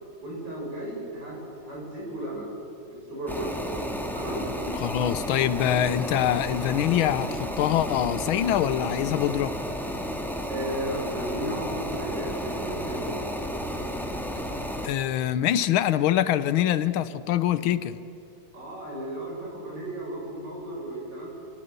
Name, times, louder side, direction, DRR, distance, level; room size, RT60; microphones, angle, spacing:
voice 1, 0.2-1.4 1.6-2.5 2.8-3.8 4.1-4.4 10.5-13.2 18.5-21.3, right 1 dB, 55° right, 7.1 m, -34 dB
sound 1, 3.3-14.9, equal, ahead, 1.8 m, -32 dB
voice 2, 4.8-9.5 14.8-18.0, left 11 dB, 90° left, 1.6 m, -24 dB
28.0 x 18.5 x 6.8 m
omnidirectional pair, 2.2 m